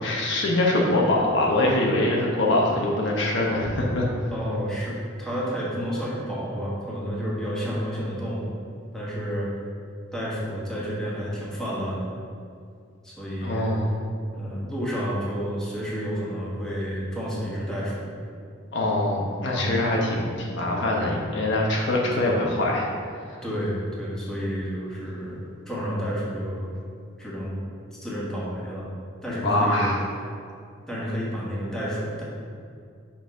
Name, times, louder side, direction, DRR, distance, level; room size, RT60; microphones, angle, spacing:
voice 1, 0.0-4.1 13.4-13.9 18.7-22.9 29.4-30.0, left 1 dB, 65° left, -2 dB, 1.0 m, -23 dB
voice 2, 4.3-8.5 8.9-9.5 10.1-12.1 13.0-13.8 14.3-18.1 19.5-19.8 22.1-22.3 23.4-26.7 27.2-27.6 27.9-28.9 29.2-29.9 30.9-32.2, equal, 5° left, -7 dB, 1.5 m, -30 dB
5.8 x 4.2 x 5.6 m, 2.3 s
head